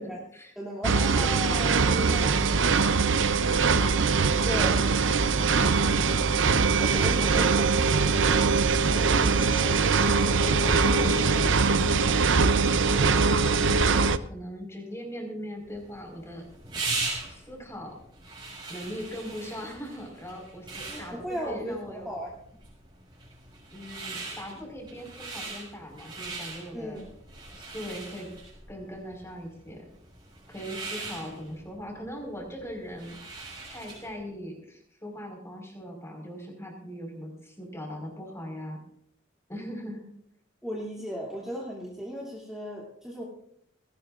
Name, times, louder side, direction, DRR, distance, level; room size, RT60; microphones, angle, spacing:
voice 1, 0.0-0.5 0.9-4.0 7.2-7.5 8.9-13.2 14.3-16.4 17.3-18.0 18.7-22.1 23.7-27.0 27.5-28.3 28.7-29.8 30.5-33.2 33.7-38.8 39.5-40.1, equal, 15° left, 2 dB, 4.8 m, -40 dB
voice 2, 0.6-1.3 4.4-4.8 6.8-7.7 20.9-22.4 26.7-27.1 40.6-43.2, equal, ahead, -5 dB, 2.7 m, -36 dB
sound 1, 0.8-14.2, right 4 dB, 75° right, 0.7 m, -22 dB
sound 2, 15.7-34.2, right 3 dB, 25° right, 6.7 m, -40 dB
20.0 x 18.0 x 2.5 m, 0.69 s
head